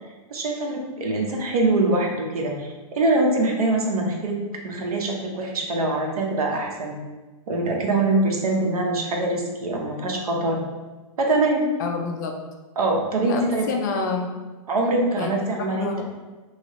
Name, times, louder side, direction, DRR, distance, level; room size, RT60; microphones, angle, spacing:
voice 1, 0.3-4.4 4.6-7.0 7.5-10.6 11.2-11.7 12.8-13.7 14.7-16.0, right 2 dB, 85° right, 1 dB, 0.8 m, -23 dB
voice 2, 11.8-12.4 13.2-14.3 15.2-16.0, left 4 dB, 30° left, 3 dB, 0.4 m, -28 dB
3.1 x 2.8 x 3.0 m, 1.2 s
hypercardioid pair, 155°, 19 cm